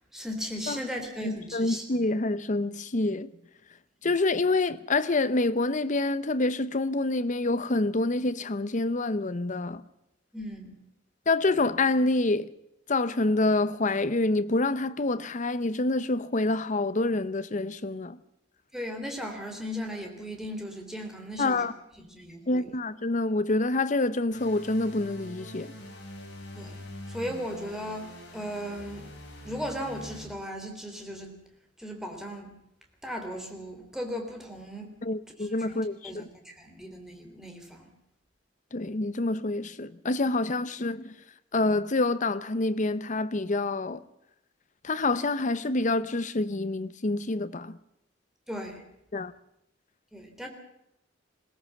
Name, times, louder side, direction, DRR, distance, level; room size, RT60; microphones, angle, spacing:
voice 1, 0.1-1.8 10.3-10.7 18.7-21.6 22.0-22.7 26.5-26.8 27.1-29.1 29.4-31.4 31.8-32.5 33.0-34.9 35.4-37.9 48.5-48.8 50.1-50.5, equal, 5° right, 3.4 m, -37 dB
voice 2, 1.2-3.3 4.0-9.8 11.3-12.5 12.9-18.2 21.4-21.7 22.5-25.7 35.0-36.3 38.7-41.1 41.5-44.0 44.8-47.8 49.1-49.3, left 2 dB, 40° left, 0.8 m, -27 dB
sound 1, 24.3-30.2, left 1 dB, 65° left, 5.5 m, -44 dB
21.5 x 17.0 x 7.2 m
head